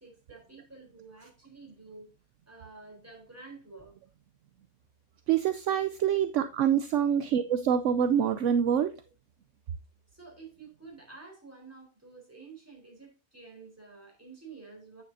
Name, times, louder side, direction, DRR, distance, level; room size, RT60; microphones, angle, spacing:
voice 1, 0.0-2.1 2.5-4.0 10.1-15.0, right 4 dB, 10° right, 3.7 m, -50 dB
voice 2, 5.3-8.9, right 8 dB, 70° right, 0.9 m, -26 dB
9.2 x 8.3 x 2.7 m
omnidirectional pair, 1.5 m